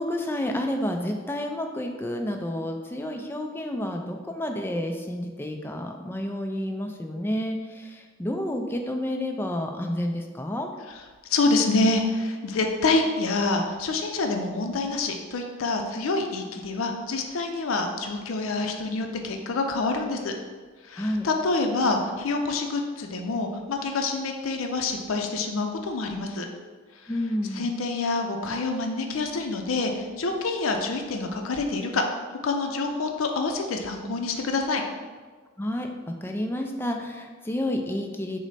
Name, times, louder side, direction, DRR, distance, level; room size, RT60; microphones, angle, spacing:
voice 1, 0.0-10.7 21.0-21.3 27.1-27.7 35.6-38.4, left 1 dB, 10° left, 3 dB, 0.3 m, -30 dB
voice 2, 11.3-20.3 20.9-26.5 27.6-32.0 32.4-34.8, left 3 dB, 75° left, 3 dB, 0.5 m, -27 dB
6.1 x 2.1 x 4.0 m, 1.4 s
head